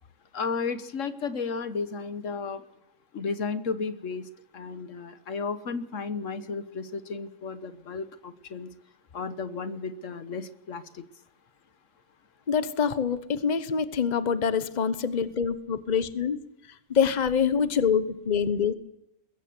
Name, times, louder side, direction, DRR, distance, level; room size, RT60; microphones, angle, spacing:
voice 1, 0.3-2.6 3.1-8.7 9.1-11.0, left 4 dB, 75° left, 12 dB, 1.5 m, -33 dB
voice 2, 12.5-16.4 16.9-18.7, left 6 dB, 35° left, 13 dB, 1.1 m, -25 dB
21.5 x 16.0 x 7.8 m, 0.85 s
omnidirectional pair, 1.3 m